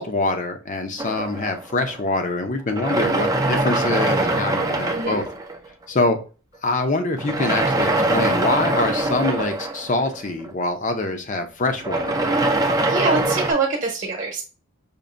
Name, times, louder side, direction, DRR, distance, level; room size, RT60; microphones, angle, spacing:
voice 1, 0.0-5.2 5.9-6.2 6.6-12.2, left 2 dB, 35° left, 0.6 m, -24 dB
sound 1, 1.0-2.2 2.7-5.8 7.2-10.6 11.7-13.5, right 2 dB, 15° right, 0.4 m, -23 dB
voice 2, 12.9-14.4, right 3 dB, 40° right, 1.0 m, -24 dB
5.2 x 2.6 x 2.5 m
head